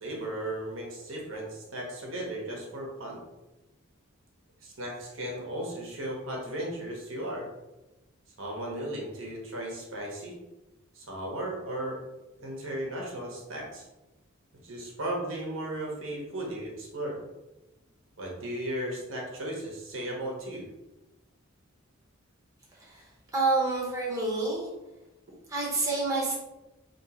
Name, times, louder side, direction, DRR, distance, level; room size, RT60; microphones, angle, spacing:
voice 1, 0.0-3.2 4.6-7.5 8.4-10.3 10.9-12.0 12.4-13.8 14.6-17.2 18.2-20.7, right 1 dB, 75° right, -2 dB, 1.1 m, -36 dB
voice 2, 22.7-24.7 25.5-26.4, right 3 dB, 15° right, -5 dB, 0.9 m, -28 dB
3.0 x 3.0 x 4.3 m, 1.0 s
head